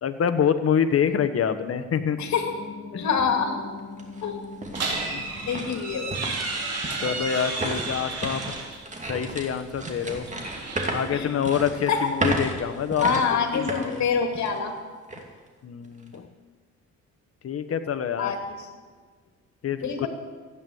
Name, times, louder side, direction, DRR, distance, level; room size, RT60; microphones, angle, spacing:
voice 1, 0.0-2.2 2.9-3.0 5.1-5.3 7.0-8.5 9.1-10.3 10.9-14.0 15.6-16.3 17.4-18.3 19.6-20.1, left 8 dB, 50° left, 11 dB, 1.2 m, -26 dB
Piano, 2.1-12.1 12.4-12.5, left 4 dB, 35° left, 2.7 m, -45 dB
voice 2, 2.2-2.6 3.0-3.6 4.2-4.4 5.5-6.3 11.1-11.3 11.9-12.0 13.0-14.7 18.2-18.7 19.8-20.1, left 6 dB, 65° left, 4 dB, 2.4 m, -26 dB
sound 1, 3.2-3.3 3.8-14.7 15.1-15.2 15.8-16.1, right 2 dB, 25° right, 2.5 m, -34 dB
sound 2, 4.7-8.8 10.1-11.3, right 3 dB, 55° right, 3.9 m, -32 dB
15.0 x 9.5 x 7.9 m, 1.5 s
cardioid pair, 90°, 30 cm